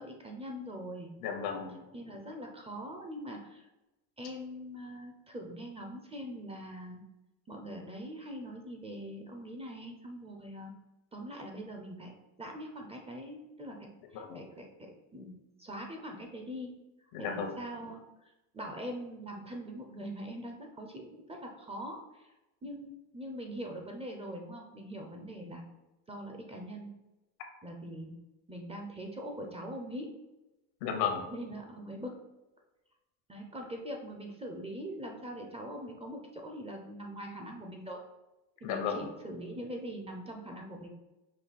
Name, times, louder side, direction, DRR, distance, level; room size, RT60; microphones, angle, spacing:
voice 1, 0.0-1.1 1.9-3.7 4.2-7.1 7.5-10.7 11.1-12.1 12.4-16.7 17.2-18.0 18.5-22.3 22.6-25.6 26.1-26.9 27.6-28.1 28.5-30.1 31.3-32.1 33.3-38.0 38.6-40.9, equal, 15° right, 2 dB, 0.5 m, -42 dB
voice 2, 1.2-1.8 14.1-14.4 17.1-17.6 30.8-31.3 38.6-39.1, left 6 dB, 85° left, 5 dB, 1.0 m, -34 dB
5.3 x 2.3 x 4.0 m, 1.0 s
supercardioid pair, 115°, 46 cm